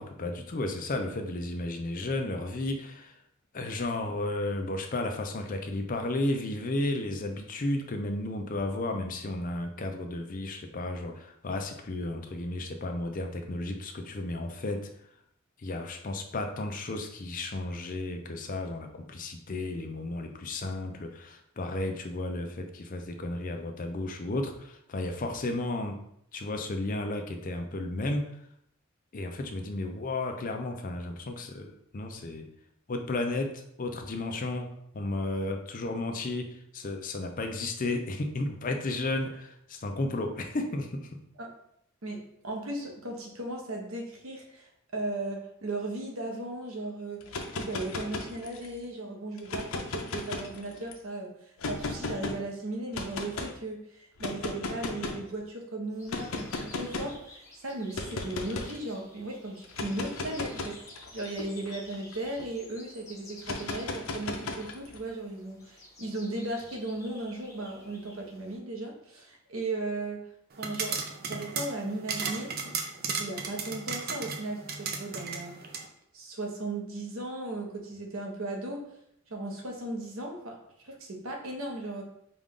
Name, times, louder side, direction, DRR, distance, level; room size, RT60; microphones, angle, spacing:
voice 1, 0.0-3.1 3.5-14.9 15.6-26.0 26.3-28.3 29.1-32.5 32.9-34.7 34.9-41.1, left 2 dB, 40° left, 4 dB, 0.5 m, -33 dB
voice 2, 42.0-47.2 47.5-60.8 61.1-70.2 70.6-71.0 71.2-72.7 73.0-75.6 76.1-78.9 79.3-80.6 80.8-82.0, right 2 dB, 85° right, 1 dB, 1.0 m, -36 dB
sound 1, 47.2-48.8 49.4-50.9 51.6-52.4 52.9-53.5 54.2-55.3 56.1-57.2 57.9-58.8 59.6-62.5 63.4-65.0, left 3 dB, 90° left, 0.6 m, -36 dB
sound 2, 55.9-68.6, left 2 dB, 15° left, 1.1 m, -52 dB
sound 3, 70.5-75.9, right 5 dB, 50° right, 0.5 m, -35 dB
5.0 x 2.4 x 3.6 m, 0.71 s
head